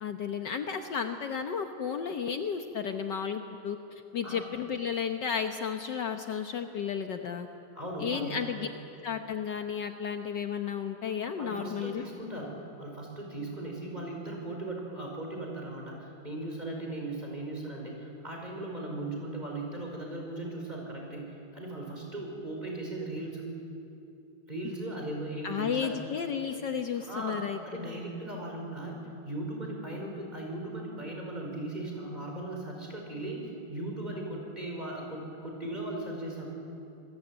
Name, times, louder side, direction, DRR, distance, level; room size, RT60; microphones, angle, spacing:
voice 1, 0.0-7.5 8.0-8.7 9.0-12.0 25.4-27.6, left 7 dB, 60° left, 6 dB, 1.6 m, -33 dB
voice 2, 7.7-8.6 11.4-23.4 24.5-26.0 27.0-27.4 27.6-29.0 29.3-36.5, right 2 dB, 20° right, 0 dB, 5.2 m, -38 dB
26.5 x 22.0 x 8.9 m, 2.7 s
omnidirectional pair, 2.3 m